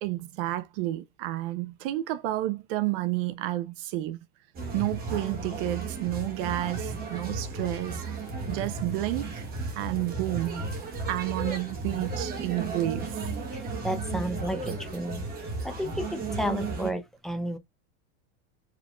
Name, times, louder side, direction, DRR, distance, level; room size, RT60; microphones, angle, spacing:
voice 1, 0.0-4.2 4.7-8.0 8.5-9.5 9.7-10.6 11.1-13.1, right 16 dB, 55° right, 0.9 m, -30 dB
sound 1, 4.5-16.9, right 3 dB, 30° right, 1.8 m, -34 dB
voice 2, 13.8-15.2 15.6-17.6, equal, ahead, 0.7 m, -32 dB
4.9 x 3.5 x 2.4 m
supercardioid pair, 150°, 33 cm